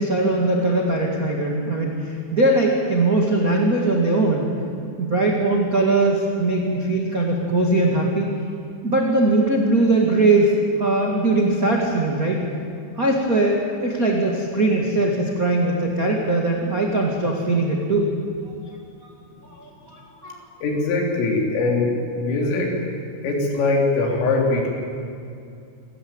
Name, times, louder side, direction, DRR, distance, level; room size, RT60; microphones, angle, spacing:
voice 1, 0.0-4.5 5.0-8.3 8.8-12.4 13.0-18.1 19.6-20.4, right 2 dB, 65° right, -1 dB, 0.8 m, -20 dB
voice 2, 20.6-22.7 23.2-24.7, left 3 dB, 80° left, 0 dB, 6.0 m, -21 dB
28.0 x 14.0 x 8.9 m, 2.4 s
omnidirectional pair, 5.8 m